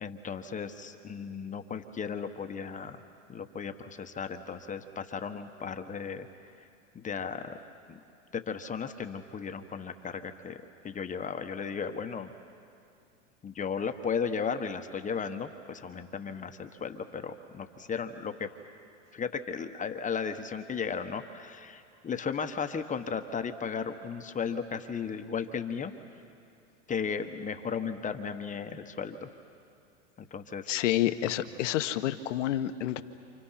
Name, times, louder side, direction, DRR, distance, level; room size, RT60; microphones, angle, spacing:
voice 1, 0.0-3.0 3.3-6.3 6.9-7.6 7.9-8.0 8.3-10.6 10.8-12.3 13.4-18.5 19.1-25.9 26.9-29.3 30.2-30.7, left 6 dB, 20° left, 7 dB, 1.3 m, -35 dB
voice 2, 30.7-33.0, left 13 dB, 70° left, 10 dB, 1.3 m, -29 dB
29.0 x 28.0 x 5.9 m, 2.5 s
hypercardioid pair, 105°, 38 cm